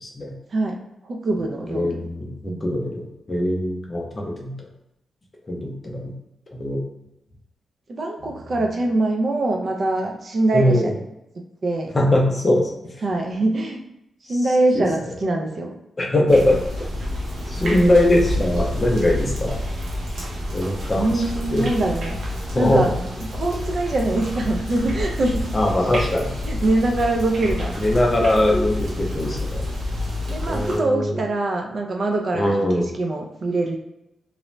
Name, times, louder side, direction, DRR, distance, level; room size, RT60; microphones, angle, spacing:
voice 1, 0.0-0.3 1.7-4.5 5.5-6.1 6.5-6.8 10.5-10.9 11.9-12.8 14.3-14.4 14.7-14.9 16.0-16.9 17.5-19.6 20.5-21.2 21.5-21.7 22.5-22.8 25.5-26.3 27.8-29.7 30.5-31.2 32.3-32.9, left 1 dB, 20° left, -1 dB, 0.5 m, -21 dB
voice 2, 1.0-2.0 2.4-2.6 7.9-10.9 11.6-11.9 13.0-13.8 14.2-15.7 21.0-22.2 22.6-22.9 23.3-25.4 26.4-27.8 30.3-33.8, right 2 dB, 40° right, 2 dB, 0.3 m, -23 dB
sound 1, 16.3-30.8, left 1 dB, 75° right, 0.7 m, -28 dB
2.5 x 2.1 x 3.0 m, 0.86 s
wide cardioid pair, 180°, 0 cm